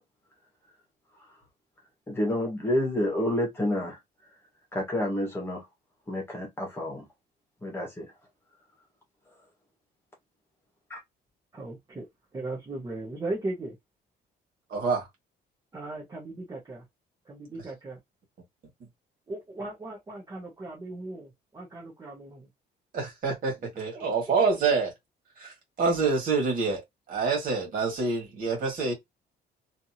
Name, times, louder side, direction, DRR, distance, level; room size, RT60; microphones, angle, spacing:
voice 1, 2.1-4.0 4.7-5.6 6.1-7.0 7.6-8.1 10.9-11.0, left 1 dB, 15° left, 1.4 m, -29 dB
voice 2, 11.5-12.1 12.3-13.8 15.7-16.8 17.2-18.0 19.3-22.5 23.9-24.1, right 2 dB, 20° right, 1.2 m, -37 dB
voice 3, 14.7-15.1 22.9-24.9 25.4-28.9, right 4 dB, 55° right, 2.0 m, -27 dB
3.4 x 2.8 x 2.8 m
cardioid pair, 165°, 18 cm